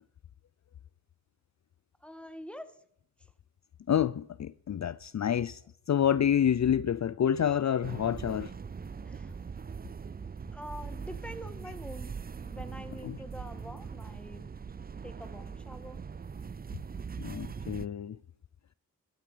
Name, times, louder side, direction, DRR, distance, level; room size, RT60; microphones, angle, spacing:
voice 1, 2.0-2.7 9.0-9.4 10.5-12.1 12.4-14.6 15.0-16.0, equal, 5° left, 1.7 m, -45 dB
voice 2, 3.9-5.6 5.9-8.5 13.0-13.1 17.2-18.2, left 9 dB, 55° left, 0.5 m, -28 dB
sound 1, 7.8-17.9, right 6 dB, 25° right, 0.4 m, -41 dB
14.5 x 12.5 x 5.0 m
cardioid pair, 60°, 35 cm